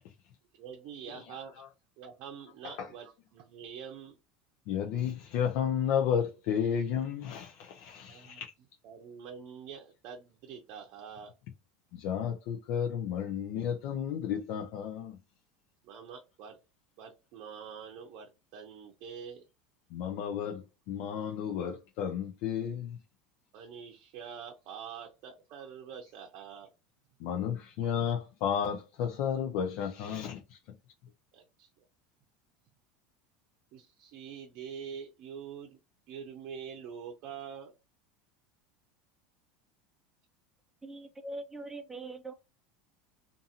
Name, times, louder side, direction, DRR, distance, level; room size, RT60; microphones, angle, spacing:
voice 1, 0.6-1.5 2.0-4.2 8.0-8.4 8.8-11.3 15.8-16.6 17.0-19.4 23.5-26.7 31.3-31.7 33.7-35.8 36.1-37.7, right 7 dB, 55° right, 0.6 m, -45 dB
voice 2, 4.7-8.5 11.9-15.2 19.9-23.0 27.2-30.6, left 8 dB, 60° left, 0.5 m, -32 dB
voice 3, 40.8-42.3, right 2 dB, 10° right, 0.5 m, -42 dB
2.7 x 2.6 x 2.5 m
supercardioid pair, 115°, 4 cm